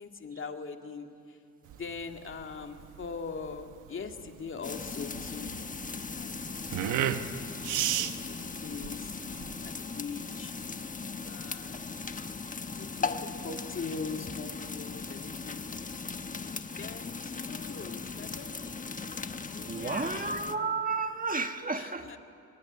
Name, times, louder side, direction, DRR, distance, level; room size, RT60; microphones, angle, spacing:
voice 1, 0.0-1.4 1.8-5.5 6.1-7.0 7.5-10.5 11.2-11.9 12.7-15.6 16.8-18.8 19.5-20.3 21.7-22.2, left 5 dB, 40° left, 5 dB, 2.2 m, -42 dB
sound 1, 1.7-9.7, right 11 dB, 90° right, 1.1 m, -34 dB
sound 2, 4.6-20.6, left 4 dB, 25° left, 1.3 m, -38 dB
voice 2, 19.7-22.1, right 4 dB, 30° right, 7 dB, 1.6 m, -32 dB
24.5 x 23.5 x 9.8 m, 2.5 s
cardioid pair, 90°, 30 cm